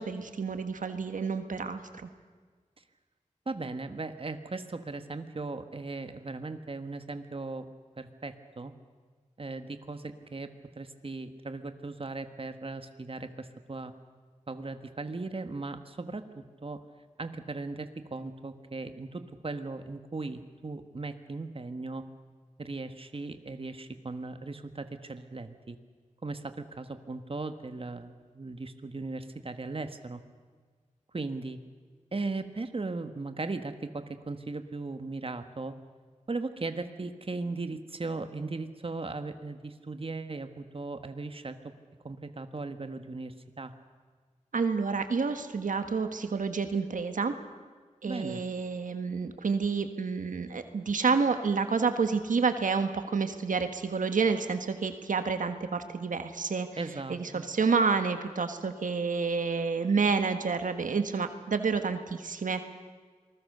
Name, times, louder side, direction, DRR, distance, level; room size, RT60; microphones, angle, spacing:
voice 1, 0.0-2.1 44.5-47.3 48.0-56.7 57.1-62.7, right 5 dB, 90° right, 8 dB, 1.4 m, -29 dB
voice 2, 3.4-7.7 8.0-8.7 9.4-10.5 10.8-13.9 14.5-16.8 17.2-22.0 22.6-25.8 26.2-30.2 31.1-31.6 32.1-35.7 36.3-41.6 42.0-43.7 48.1-48.4 56.8-57.5, right 3 dB, 45° right, 8 dB, 1.5 m, -38 dB
27.0 x 20.5 x 6.7 m, 1.5 s
wide cardioid pair, 65°, 13 cm